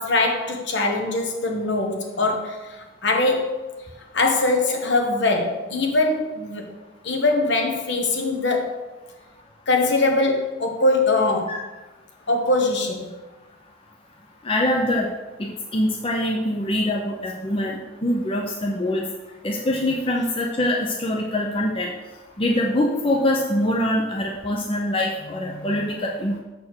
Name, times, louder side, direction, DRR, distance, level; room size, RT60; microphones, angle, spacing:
voice 1, 0.0-3.6 4.1-6.8 7.0-8.9 9.7-11.6 12.3-13.1 25.5-25.7, left 2 dB, 60° left, 2 dB, 1.2 m, -22 dB
voice 2, 14.4-15.1 15.4-19.1 19.4-21.9 22.4-26.4, left 1 dB, 25° left, -1 dB, 0.7 m, -24 dB
7.1 x 4.3 x 6.3 m, 1.2 s
head